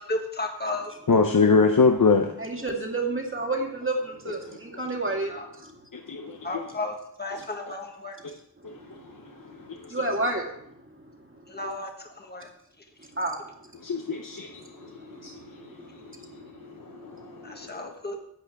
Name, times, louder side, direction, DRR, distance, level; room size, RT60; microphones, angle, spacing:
voice 1, 0.0-0.9 5.3-5.5 6.4-8.2 11.5-12.5 17.4-18.2, left 2 dB, 25° left, 3 dB, 1.5 m, -33 dB
voice 2, 1.1-2.4 4.4-4.6 4.8-4.9 5.9-6.7 7.3-7.4 8.6-10.0 13.7-17.9, left 4 dB, 50° left, 4 dB, 0.8 m, -26 dB
voice 3, 2.4-5.3 9.9-10.4 13.2-13.4, right 2 dB, 30° right, 0 dB, 2.2 m, -29 dB
13.0 x 8.2 x 3.6 m, 0.73 s
wide cardioid pair, 45°, 41 cm